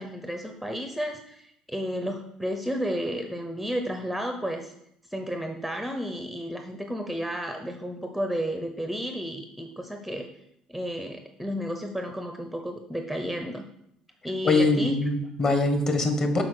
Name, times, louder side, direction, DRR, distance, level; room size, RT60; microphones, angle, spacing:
voice 1, 0.0-4.7 5.1-10.3 10.7-13.6 14.2-15.0, equal, ahead, 5 dB, 0.7 m, -32 dB
voice 2, 14.4-16.4, left 2 dB, 30° left, 6 dB, 1.4 m, -23 dB
8.6 x 5.5 x 6.3 m, 0.75 s
cardioid pair, 150°, 2 cm